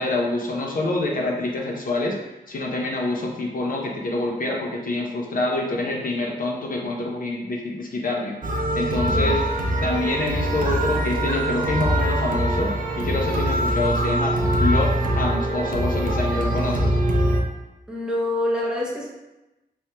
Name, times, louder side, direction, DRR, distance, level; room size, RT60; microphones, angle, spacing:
voice 1, 0.0-2.2 2.5-8.3 8.7-9.4 9.8-16.9, left 2 dB, 55° left, -1 dB, 0.5 m, -26 dB
sound 1, 8.4-17.4, right 1 dB, 55° right, 0.4 m, -23 dB
voice 2, 9.1-9.4 17.9-19.1, left 1 dB, 5° right, -4 dB, 0.6 m, -26 dB
3.2 x 3.0 x 2.8 m, 1.0 s
wide cardioid pair, 145°, 17 cm